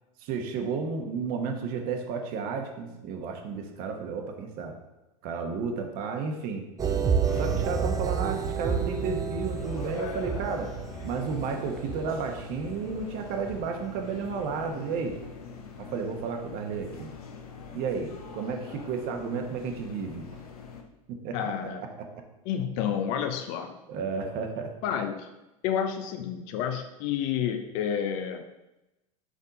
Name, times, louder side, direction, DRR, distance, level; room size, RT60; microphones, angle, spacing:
voice 1, 0.2-4.7 5.2-6.6 7.3-10.7 11.0-15.1 15.8-17.1 17.7-20.4 21.2-21.5 23.9-24.7, right 5 dB, 50° right, 4 dB, 1.1 m, -32 dB
sound 1, 6.8-14.7 15.1-15.2, right 6 dB, 20° right, 0.5 m, -31 dB
sound 2, 7.2-20.8, left 5 dB, 80° left, 0.9 m, -43 dB
voice 2, 21.3-21.8 22.5-23.7 24.8-25.3 25.6-28.4, left 8 dB, 55° left, 6 dB, 0.6 m, -30 dB
5.1 x 4.9 x 3.9 m, 0.97 s
hypercardioid pair, 95°, 19 cm